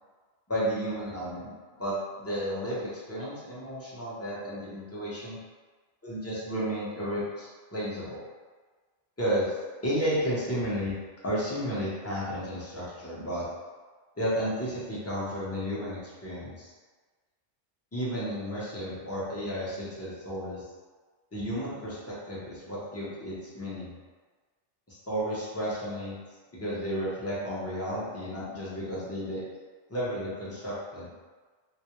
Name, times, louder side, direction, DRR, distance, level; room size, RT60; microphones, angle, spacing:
voice 1, 0.5-1.5 1.8-5.4 6.0-8.3 9.2-9.5 9.8-10.9 11.2-13.5 14.2-16.7 17.9-20.7 21.3-23.9 24.9-26.2 26.5-29.4 29.9-31.1, equal, 20° left, -9 dB, 0.5 m, -32 dB
2.3 x 2.1 x 2.9 m, 1.4 s
omnidirectional pair, 1.2 m